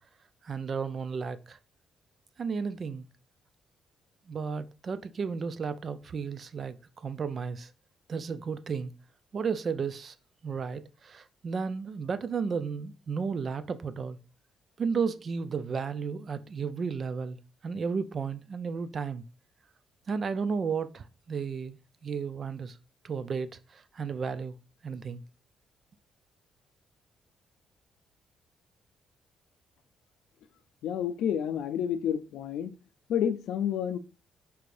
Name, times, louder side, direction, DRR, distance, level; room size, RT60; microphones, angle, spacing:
voice 1, 0.4-1.6 2.4-3.1 4.3-7.7 8.1-8.9 9.3-10.2 10.4-14.2 14.8-17.4 17.6-19.2 20.1-22.8 23.0-24.6 24.8-25.2, right 5 dB, 45° right, 0.4 m, -33 dB
voice 2, 30.8-32.7 33.1-34.0, left 9 dB, 80° left, 0.4 m, -29 dB
4.5 x 3.2 x 2.5 m
cardioid pair, 90°, 0 cm